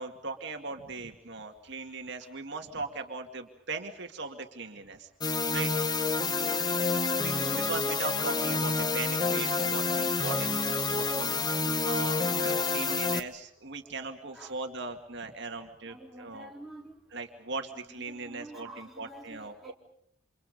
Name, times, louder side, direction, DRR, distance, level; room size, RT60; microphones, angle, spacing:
voice 1, 0.0-5.1 5.5-5.7 7.1-16.5 17.1-19.7, right 3 dB, 55° right, 4 dB, 2.2 m, -39 dB
sound 1, 5.2-13.2, left 4 dB, 20° left, 1.3 m, -28 dB
voice 2, 7.8-8.9 9.6-9.9 10.6-10.7 11.6-12.0 12.9-13.0 14.3-14.6 15.9-17.0 17.7-19.7, right 1 dB, ahead, -2 dB, 4.2 m, -49 dB
29.0 x 27.5 x 5.3 m, 0.66 s
head